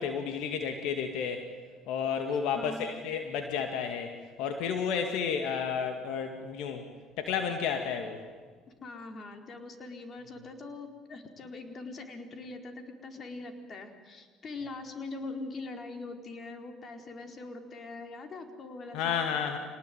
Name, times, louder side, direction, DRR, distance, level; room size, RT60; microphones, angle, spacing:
voice 1, 0.0-1.5 1.9-6.8 7.2-8.2 18.9-19.6, left 7 dB, 75° left, 6 dB, 2.2 m, -31 dB
voice 2, 2.3-2.9 8.8-19.2, left 3 dB, 45° left, 5 dB, 4.4 m, -42 dB
27.0 x 19.5 x 9.5 m, 1.5 s
supercardioid pair, 85°, 0 cm